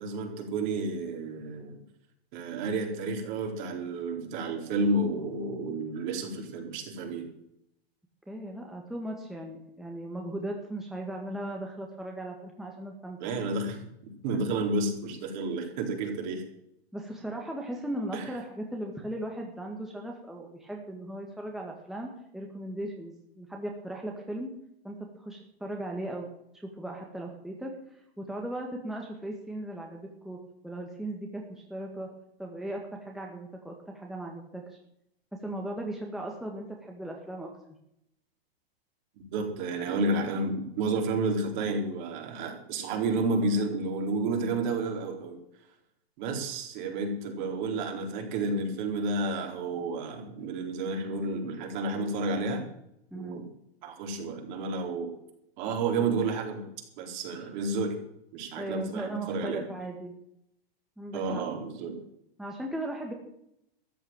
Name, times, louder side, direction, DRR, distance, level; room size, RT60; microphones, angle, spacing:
voice 1, 0.0-1.8 2.3-7.3 13.2-13.8 14.2-16.4 18.1-18.3 39.3-45.4 46.2-52.7 53.1-53.5 53.8-55.1 55.6-56.7 57.0-58.0 58.3-59.6 61.1-62.0, right 3 dB, 50° right, 2 dB, 4.2 m, -31 dB
voice 2, 8.3-13.3 14.3-14.4 16.9-24.5 24.8-26.3 26.5-27.7 28.2-30.4 30.6-32.1 32.4-34.8 35.3-37.5 53.1-53.4 58.5-60.1 61.0-61.4 62.4-63.1, right 1 dB, ahead, 0 dB, 1.9 m, -37 dB
14.0 x 7.8 x 9.1 m, 0.77 s
hypercardioid pair, 130°, 31 cm